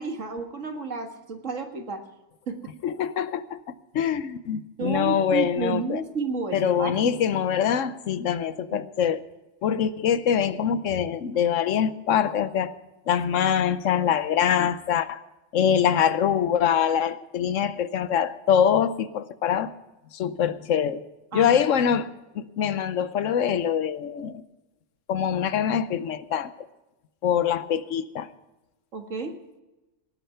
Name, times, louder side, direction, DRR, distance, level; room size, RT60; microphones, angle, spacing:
voice 1, 0.0-2.0 2.5-2.6 4.8-7.2 8.7-8.8 21.3-21.6 28.9-29.4, right 4 dB, 85° right, 4 dB, 2.1 m, -31 dB
voice 2, 2.8-3.6 3.9-6.0 6.5-9.2 9.6-12.7 13.1-15.2 15.5-19.7 20.1-21.0 21.3-22.1 22.3-24.4 25.1-26.5 27.2-28.3, left 8 dB, 85° left, 14 dB, 1.1 m, -24 dB
18.0 x 9.0 x 5.7 m, 1.0 s
omnidirectional pair, 1.3 m